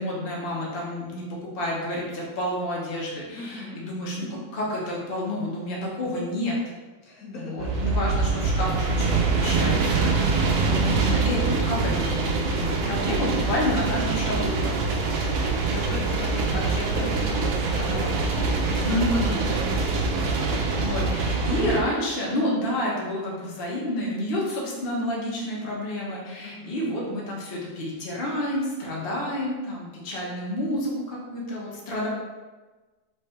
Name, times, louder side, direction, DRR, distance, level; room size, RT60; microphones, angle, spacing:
voice 1, 0.0-6.6 7.4-14.9 15.4-15.6 16.1-17.1 17.8-18.3 18.8-19.4 20.8-32.1, left 1 dB, 40° left, -4 dB, 1.1 m, -30 dB
voice 2, 3.3-3.8 7.0-8.0 15.4-20.6 26.4-26.8, left 1 dB, 70° left, -4 dB, 1.2 m, -38 dB
sound 1, 7.6-21.8, right 4 dB, 90° right, 1.1 m, -24 dB
3.5 x 3.3 x 4.3 m, 1.3 s
omnidirectional pair, 1.7 m